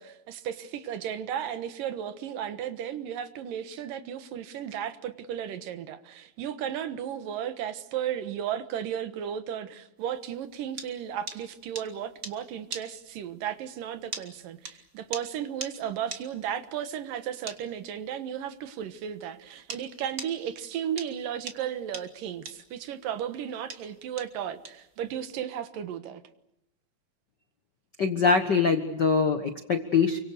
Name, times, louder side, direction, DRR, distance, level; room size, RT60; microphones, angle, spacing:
voice 1, 0.0-26.2, right 9 dB, 80° right, 3.0 m, -34 dB
sound 1, 10.2-19.8 20.2-25.4, right 4 dB, 30° right, 1.9 m, -41 dB
voice 2, 28.0-30.2, left 5 dB, 60° left, 1.1 m, -23 dB
29.0 x 24.5 x 6.7 m
omnidirectional pair, 3.9 m